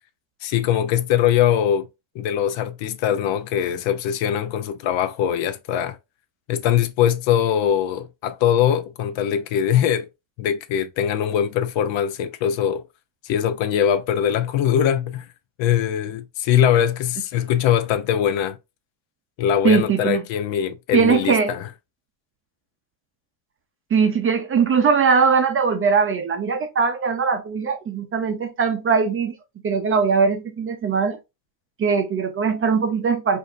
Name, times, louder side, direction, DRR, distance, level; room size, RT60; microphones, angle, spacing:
voice 1, 0.4-1.9 2.1-6.0 6.5-10.1 10.4-12.8 13.2-15.2 15.6-18.6 19.4-21.7, left 9 dB, 65° left, 0.8 m, -21 dB
voice 2, 19.6-20.2 20.9-21.5 23.9-29.4 29.6-31.2 31.8-33.4, right 5 dB, 25° right, 0.6 m, -20 dB
4.9 x 2.7 x 2.5 m
cardioid pair, 145°, 49 cm